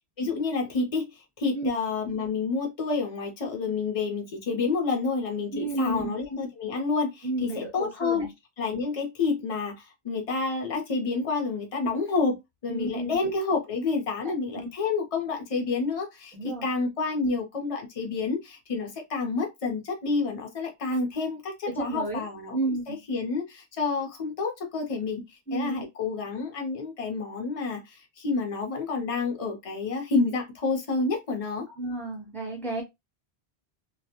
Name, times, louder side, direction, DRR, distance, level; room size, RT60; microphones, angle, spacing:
voice 1, 0.2-8.3 8.6-12.4 12.6-22.6 22.9-31.7, left 4 dB, 35° left, 0.7 m, -29 dB
voice 2, 5.5-6.2 7.2-8.3 12.7-13.3 14.2-14.7 16.3-16.7 21.7-22.2 22.5-23.0 25.5-25.8 31.8-32.8, right 2 dB, ahead, 0.7 m, -31 dB
2.3 x 2.1 x 2.9 m
omnidirectional pair, 1.1 m